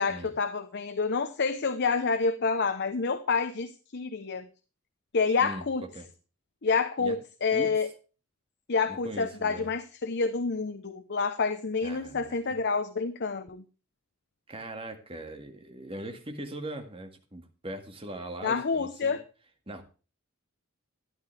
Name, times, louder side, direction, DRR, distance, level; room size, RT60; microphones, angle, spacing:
voice 1, 0.0-4.5 5.1-5.8 6.6-7.9 8.7-13.6 18.4-19.2, left 4 dB, 55° left, 0.8 m, -28 dB
voice 2, 8.9-9.7 11.8-12.6 14.5-19.2 19.7-19.8, right 1 dB, 25° right, 1.9 m, -40 dB
12.5 x 11.0 x 3.3 m
head